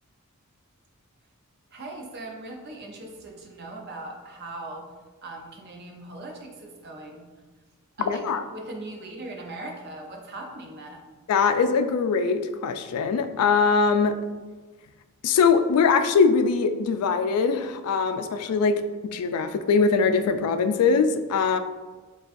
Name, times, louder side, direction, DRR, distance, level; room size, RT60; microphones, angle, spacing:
voice 1, 1.7-4.9 5.2-7.3 8.0-8.2 8.5-11.0, right 2 dB, 45° right, 1 dB, 0.6 m, -39 dB
voice 2, 8.1-8.4 11.3-14.2 15.2-21.6, left 5 dB, 85° left, 9 dB, 0.3 m, -22 dB
6.8 x 2.3 x 2.5 m, 1.3 s
head